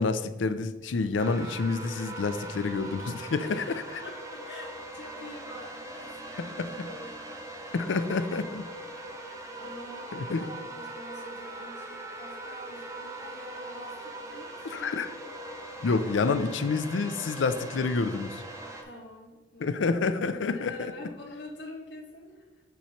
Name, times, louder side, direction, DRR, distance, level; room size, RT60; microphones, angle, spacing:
voice 1, 0.0-3.6 6.6-6.7 7.7-8.6 10.1-10.5 14.6-15.1 15.8-18.4 19.6-20.9, left 4 dB, 90° left, 11 dB, 0.5 m, -28 dB
sound 1, 1.2-18.8, right 1 dB, 15° right, 0.7 m, -41 dB
voice 2, 3.4-3.7 4.0-7.7 9.6-14.9 18.8-22.6, left 1 dB, 70° left, -2 dB, 1.8 m, -46 dB
7.0 x 3.0 x 5.7 m, 1.2 s
head